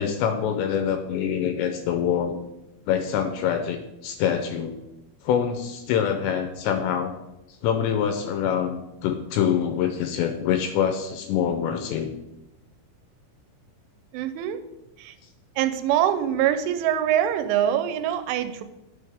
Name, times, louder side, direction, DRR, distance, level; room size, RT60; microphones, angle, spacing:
voice 1, 0.0-2.4 2.9-4.8 5.2-7.1 7.6-12.1, left 8 dB, 80° left, 6 dB, 2.6 m, -25 dB
voice 2, 14.1-14.6 15.0-15.1 15.6-18.6, right 10 dB, 90° right, 10 dB, 3.0 m, -24 dB
9.4 x 7.8 x 3.5 m, 0.94 s
omnidirectional pair, 5.5 m